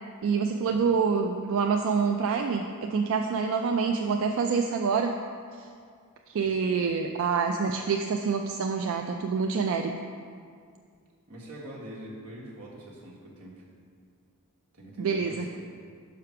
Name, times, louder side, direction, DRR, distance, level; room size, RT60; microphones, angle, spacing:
voice 1, 0.2-5.2 5.6-5.7 6.3-9.9 15.0-15.5, right 5 dB, 60° right, 3 dB, 0.3 m, -26 dB
voice 2, 6.4-6.8 11.3-13.6 14.7-15.6, right 1 dB, 85° right, -4 dB, 1.5 m, -44 dB
5.7 x 5.0 x 5.8 m, 2.2 s
head